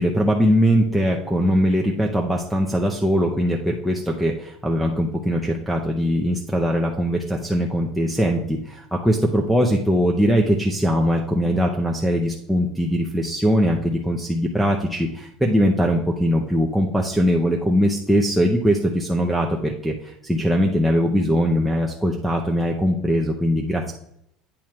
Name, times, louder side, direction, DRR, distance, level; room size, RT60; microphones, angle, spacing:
voice 1, 0.0-23.9, equal, ahead, -2 dB, 0.5 m, -21 dB
8.8 x 3.2 x 5.7 m, 0.74 s
cardioid pair, 170°, 0 cm